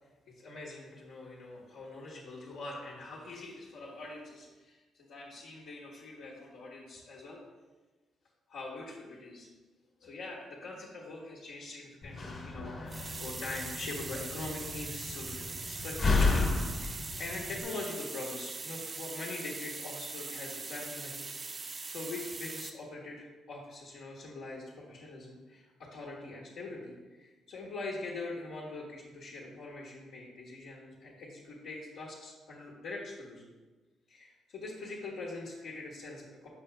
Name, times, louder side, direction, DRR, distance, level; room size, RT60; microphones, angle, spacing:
voice 1, 0.3-7.4 8.5-9.5 10.0-16.4 16.8-21.3 21.9-33.5 34.1-36.5, left 2 dB, 75° left, -5 dB, 1.3 m, -43 dB
Slam, 12.0-17.6, left 3 dB, 45° left, 1.3 m, -33 dB
sound 1, 12.9-22.7, right 3 dB, 30° right, 0.5 m, -41 dB
6.8 x 4.9 x 3.3 m, 1.2 s
cardioid pair, 90°, 0 cm